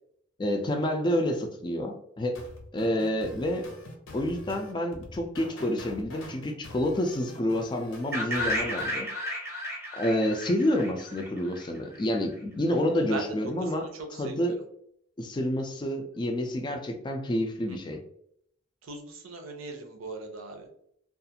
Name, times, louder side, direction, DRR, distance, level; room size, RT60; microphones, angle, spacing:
voice 1, 0.4-2.4 2.7-3.7 4.1-9.1 9.9-13.9 14.2-14.6 15.2-18.0, left 1 dB, 20° left, 4 dB, 0.3 m, -28 dB
sound 1, 2.3-9.0, left 2 dB, 80° left, 0.7 m, -45 dB
sound 2, 8.1-12.0, equal, 15° right, 0.6 m, -33 dB
voice 2, 13.9-14.6 17.7-17.8 18.8-20.7, right 2 dB, 85° right, 4 dB, 0.6 m, -39 dB
2.4 x 2.4 x 2.7 m, 0.70 s
head